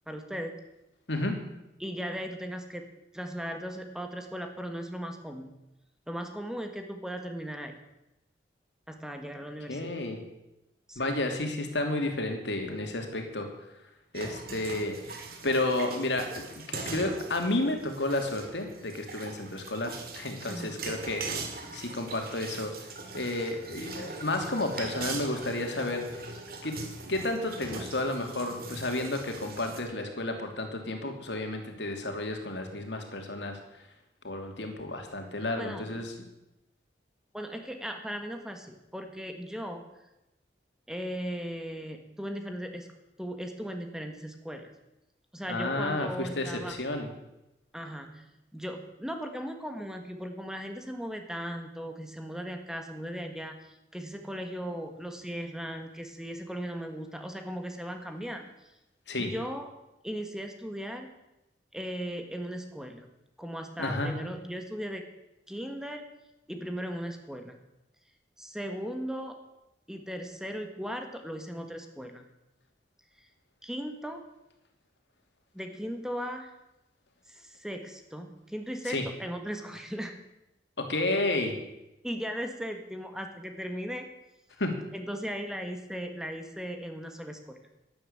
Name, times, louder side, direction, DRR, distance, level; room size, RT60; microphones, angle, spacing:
voice 1, 0.1-0.6 1.8-2.9 3.1-5.5 6.1-7.8 8.9-9.9 10.9-11.1 20.5-20.8 35.6-35.9 37.3-39.8 40.9-42.9 43.2-44.7 45.3-46.8 47.7-58.5 59.2-59.7 60.0-61.1 61.7-63.1 63.4-65.0 65.5-66.1 66.5-67.6 68.4-69.4 69.9-72.3 73.6-74.3 75.5-76.5 77.3-80.1 82.0-84.0 84.9-87.6, equal, 5° right, 5 dB, 1.5 m, -37 dB
voice 2, 1.1-1.4 9.7-10.2 11.0-13.5 14.1-15.0 15.4-21.2 21.7-22.7 23.1-26.2 26.6-26.8 27.1-33.6 34.2-36.1 45.5-47.1 59.1-59.3 63.8-64.1 78.9-79.0 80.8-81.6 84.6-84.8, left 2 dB, 80° left, 4 dB, 2.9 m, -31 dB
sound 1, 14.1-29.8, right 3 dB, 55° right, 2.4 m, -41 dB
12.0 x 11.0 x 8.7 m, 0.91 s
head